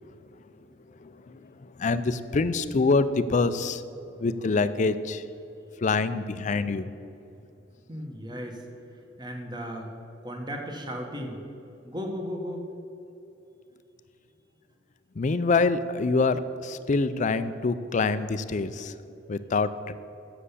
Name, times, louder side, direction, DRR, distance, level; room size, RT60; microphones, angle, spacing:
voice 1, 1.8-3.8 4.2-5.2 5.8-6.9 15.2-18.9 19.3-19.9, left 3 dB, 40° left, 13 dB, 0.4 m, -25 dB
voice 2, 7.9-8.6 9.2-9.9 10.2-11.4 11.8-12.7, equal, 25° right, 2 dB, 1.3 m, -35 dB
7.6 x 6.9 x 8.2 m, 2.8 s
head